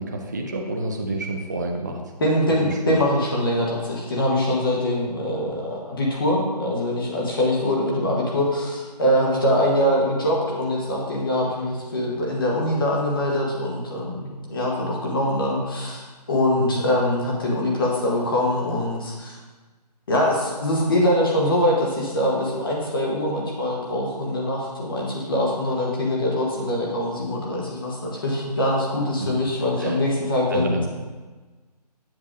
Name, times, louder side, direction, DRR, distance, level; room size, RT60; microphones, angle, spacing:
voice 1, 0.0-2.0 2.6-3.0 16.6-16.8 29.8-30.0 30.5-30.8, right 1 dB, 25° right, 1 dB, 0.4 m, -28 dB
voice 2, 2.2-16.0 16.3-19.4 20.1-30.9, left 1 dB, 35° left, -3 dB, 1.1 m, -23 dB
7.4 x 6.6 x 2.4 m, 1.3 s
hypercardioid pair, 170°, 21 cm